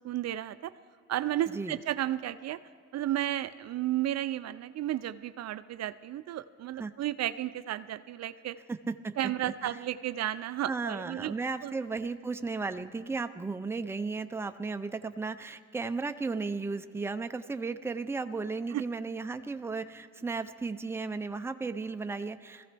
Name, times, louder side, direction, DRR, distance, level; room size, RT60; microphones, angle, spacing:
voice 1, 0.0-0.7 1.1-2.6 2.9-8.6 9.2-11.3 11.6-11.8 18.7-18.8, right 13 dB, 60° right, 13 dB, 0.5 m, -33 dB
voice 2, 8.7-9.7 10.6-22.7, right 4 dB, 10° right, 9 dB, 0.5 m, -35 dB
21.5 x 15.0 x 3.4 m, 2.1 s
cardioid pair, 90°, 30 cm